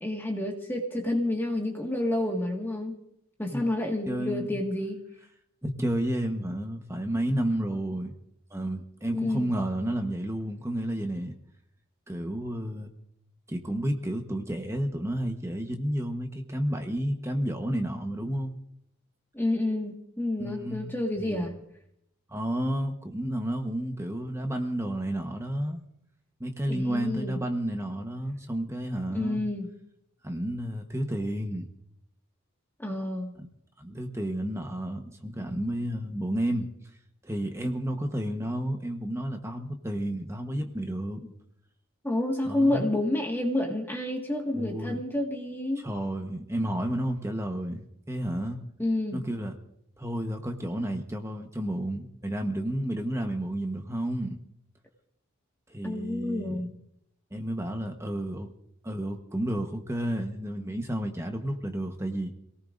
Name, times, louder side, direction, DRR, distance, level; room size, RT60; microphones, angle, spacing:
voice 1, 0.0-2.9 3.4-5.0 9.1-9.5 19.3-21.6 26.7-27.4 29.1-29.7 32.8-33.3 41.2-41.3 42.0-45.8 48.8-49.2 55.8-56.7, left 1 dB, 10° left, 1 dB, 1.8 m, -29 dB
voice 2, 4.1-4.6 5.6-8.1 8.5-11.3 12.1-12.9 13.5-18.5 20.4-20.9 21.2-21.5 22.3-25.8 26.4-29.4 30.2-31.7 33.4-33.5 33.8-36.7 37.2-41.2 42.4-42.9 44.5-45.0 45.8-48.6 49.1-49.5 50.0-54.4 55.7-56.7 57.3-58.5 58.8-62.3, right 1 dB, 10° right, 4 dB, 1.1 m, -31 dB
27.0 x 18.5 x 2.6 m, 0.74 s
head